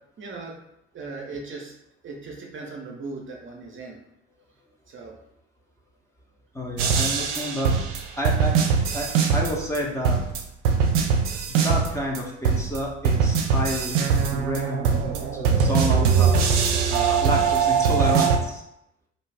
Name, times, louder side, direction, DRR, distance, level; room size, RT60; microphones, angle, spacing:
voice 1, 0.2-0.5 0.9-1.7 2.0-4.0 4.9-5.2, right 3 dB, 35° right, -1 dB, 0.7 m, -38 dB
voice 2, 6.5-7.8 8.2-8.6 8.9-10.2 11.5-16.5 16.9-18.6, equal, 10° left, -3 dB, 0.7 m, -30 dB
sound 1, 6.8-9.8 10.0-12.2 12.4-18.4, right 6 dB, 80° right, 0.5 m, -22 dB
2.6 x 2.3 x 3.3 m, 0.82 s
hypercardioid pair, 55°, 35 cm